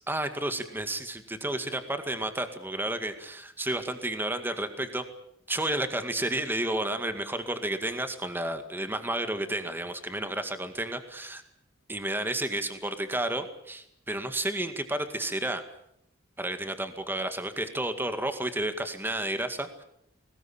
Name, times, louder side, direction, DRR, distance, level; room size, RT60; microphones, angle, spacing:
voice 1, 0.1-5.0 5.5-11.4 11.9-15.6 16.4-19.8, right 1 dB, 10° right, 8 dB, 2.1 m, -31 dB
21.0 x 20.0 x 8.8 m, 0.76 s
head